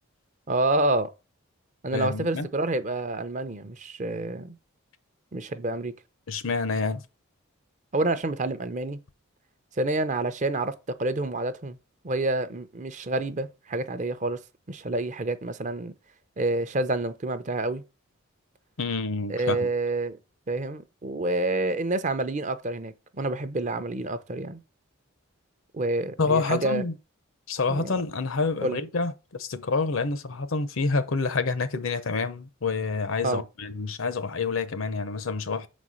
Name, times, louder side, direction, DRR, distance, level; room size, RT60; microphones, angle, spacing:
voice 1, 0.5-1.1 1.8-4.5 5.3-5.9 7.9-9.0 9.8-11.8 12.0-14.4 14.7-15.9 16.4-17.8 19.3-20.2 20.5-24.6 25.7-26.8 27.7-28.0 28.6-28.8 33.2-33.4, right 2 dB, 35° right, 0.6 m, -28 dB
voice 2, 1.9-2.5 6.3-7.0 18.8-19.7 26.2-26.9 27.5-35.7, left 4 dB, 65° left, 0.7 m, -28 dB
5.7 x 4.2 x 6.2 m
head